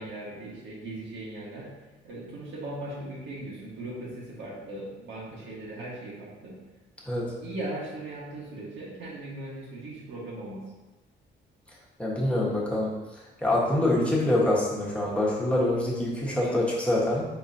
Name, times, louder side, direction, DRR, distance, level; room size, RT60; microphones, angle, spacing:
voice 1, 0.0-1.7 2.0-6.6 7.4-10.6 16.2-16.6, right 1 dB, 70° right, -6 dB, 1.4 m, -38 dB
voice 2, 12.0-12.9 13.4-17.3, left 1 dB, 5° left, -5 dB, 1.3 m, -25 dB
4.3 x 3.9 x 2.7 m, 1.1 s
cardioid pair, 90°, 20 cm